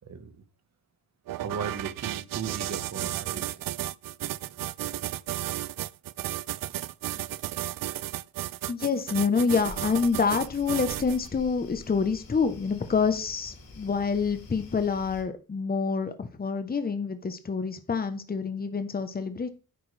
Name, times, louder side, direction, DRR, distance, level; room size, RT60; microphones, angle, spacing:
sound 1, 1.3-11.3, right 14 dB, 65° right, 0.5 m, -33 dB
voice 1, 1.4-3.7, right 6 dB, 45° right, 9 dB, 1.5 m, -37 dB
voice 2, 8.7-19.5, left 5 dB, 25° left, 9 dB, 1.0 m, -27 dB
sound 2, 9.6-15.2, left 2 dB, 70° left, 3.7 m, -47 dB
10.5 x 8.5 x 3.4 m, 0.34 s
wide cardioid pair, 125°, 36 cm